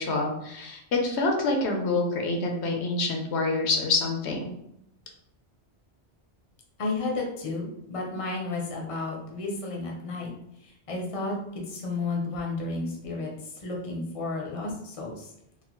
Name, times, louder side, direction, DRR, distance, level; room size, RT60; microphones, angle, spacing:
voice 1, 0.0-4.5, left 3 dB, 75° left, 2 dB, 0.9 m, -27 dB
voice 2, 6.8-15.3, left 3 dB, 35° left, -1 dB, 0.7 m, -32 dB
3.8 x 2.1 x 3.0 m, 0.79 s
omnidirectional pair, 1.2 m